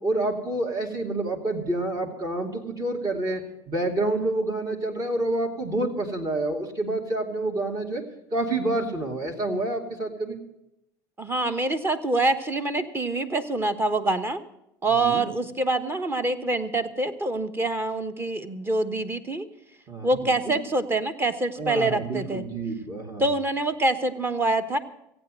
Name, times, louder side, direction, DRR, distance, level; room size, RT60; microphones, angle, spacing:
voice 1, 0.0-8.0 8.3-10.4 15.0-15.2 19.9-20.5 21.6-23.2, right 2 dB, 35° right, 0 dB, 2.5 m, -28 dB
voice 2, 11.2-14.4 14.8-19.4 20.0-22.4 23.2-24.8, right 2 dB, 20° right, 9 dB, 1.2 m, -25 dB
15.0 x 8.9 x 7.6 m, 0.85 s
supercardioid pair, 90°, 10 cm